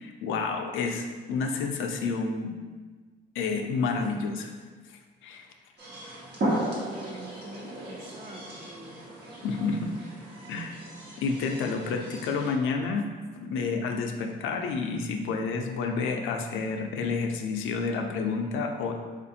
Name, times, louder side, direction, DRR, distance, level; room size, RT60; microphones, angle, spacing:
voice 1, 0.0-2.5 3.3-4.5 5.2-5.5 9.4-9.9 10.5-10.8 11.2-13.1 13.4-18.9, left 4 dB, 85° left, 4 dB, 0.4 m, -29 dB
sound 1, 5.8-12.5, right 1 dB, 60° right, 1.1 m, -36 dB
voice 2, 6.5-9.0, right 2 dB, 30° right, 0 dB, 0.6 m, -45 dB
4.7 x 2.5 x 2.7 m, 1.4 s
cardioid pair, 90°, 20 cm